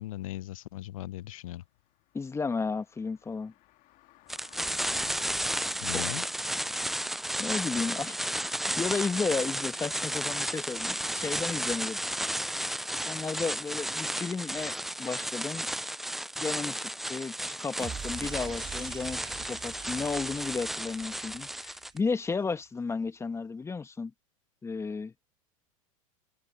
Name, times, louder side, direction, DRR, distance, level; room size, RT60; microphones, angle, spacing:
voice 1, 0.0-1.6 5.8-6.2, left 15 dB, 80° left, 0.7 m, -38 dB
Car passing by, 1.8-7.8, left 18 dB, 50° left, 2.5 m, -57 dB
voice 2, 2.1-3.5 5.8-6.0 7.4-8.2 8.8-12.0 13.0-15.7 16.4-24.1 24.6-25.1, left 4 dB, 15° left, 1.3 m, -33 dB
sound 1, 4.3-22.0, right 1 dB, ahead, 0.3 m, -33 dB
sound 2, 17.8-22.1, right 7 dB, 25° right, 2.4 m, -44 dB
hypercardioid pair, 100°, 18 cm